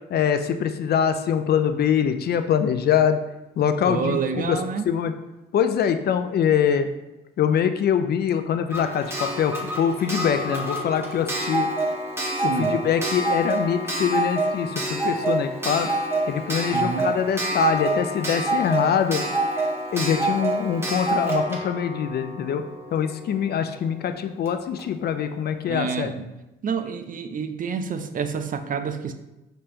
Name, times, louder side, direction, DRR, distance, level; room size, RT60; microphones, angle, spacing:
voice 1, 0.1-3.2 3.6-4.6 4.9-5.1 5.5-6.9 7.4-11.7 12.4-15.9 16.3-19.2 19.9-22.6 22.9-26.1, left 8 dB, 55° left, 9 dB, 0.4 m, -23 dB
voice 2, 3.9-4.9 12.4-12.7 16.7-17.1 25.7-26.3 26.6-29.1, right 6 dB, 45° right, 9 dB, 0.5 m, -28 dB
Clock, 8.7-23.3 24.5-24.6 24.8-24.9, right 2 dB, 10° right, 1.0 m, -27 dB
5.1 x 3.3 x 2.9 m, 0.98 s
cardioid pair, 90°, 20 cm